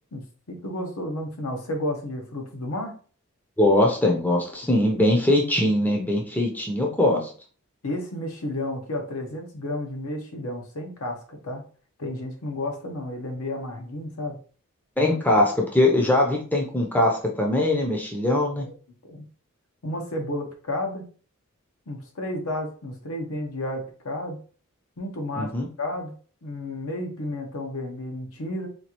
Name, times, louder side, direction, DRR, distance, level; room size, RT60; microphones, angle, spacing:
voice 1, 0.1-2.9 7.8-11.6 12.0-14.4 19.1-19.3 19.8-21.1 21.9-24.4 25.0-25.5 25.8-26.2 26.4-28.7, left 1 dB, 75° left, 3 dB, 0.8 m, -32 dB
voice 2, 3.6-7.3 15.0-18.7 25.4-25.7, left 1 dB, 10° left, -1 dB, 0.5 m, -21 dB
4.1 x 2.4 x 2.9 m, 0.40 s
head